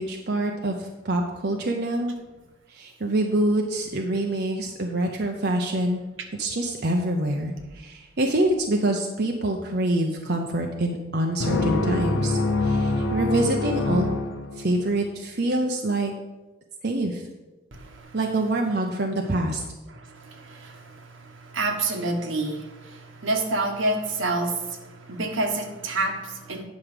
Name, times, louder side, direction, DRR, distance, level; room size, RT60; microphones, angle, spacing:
voice 1, 0.0-2.1 2.7-6.0 6.4-14.2 14.5-16.1 16.8-17.3 18.1-19.6, right 1 dB, 55° right, 2 dB, 0.7 m, -25 dB
sound 1, 11.4-15.0, left 2 dB, 85° left, 0.9 m, -25 dB
voice 2, 17.7-18.2 19.9-26.6, right 2 dB, 80° right, 4 dB, 1.2 m, -29 dB
9.3 x 6.0 x 5.0 m, 1.1 s
head